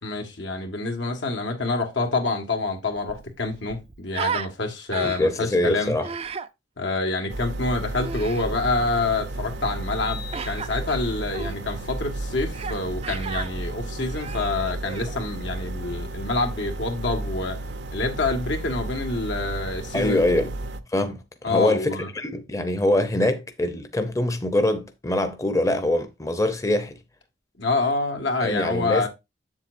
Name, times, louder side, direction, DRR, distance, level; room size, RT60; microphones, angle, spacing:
voice 1, 0.0-5.9 6.8-17.6 17.9-20.5 21.4-22.1 27.6-29.1, left 3 dB, 80° left, 1.8 m, -27 dB
Human voice, 2.5-2.6 2.9-4.5 4.9-5.4 6.0-6.5 8.0-8.5 10.3-10.7 11.3-11.6 12.5-12.8 13.0-13.5 14.1-15.2, right 6 dB, 35° right, 0.4 m, -33 dB
voice 2, 5.0-6.1 19.9-20.5 20.9-26.9 28.4-29.1, left 1 dB, 15° left, 0.7 m, -24 dB
sound 1, 7.3-20.8, right 2 dB, 70° right, 0.7 m, -33 dB
sound 2, 9.9-11.4, left 8 dB, 55° left, 1.7 m, -43 dB
7.6 x 7.3 x 2.6 m
head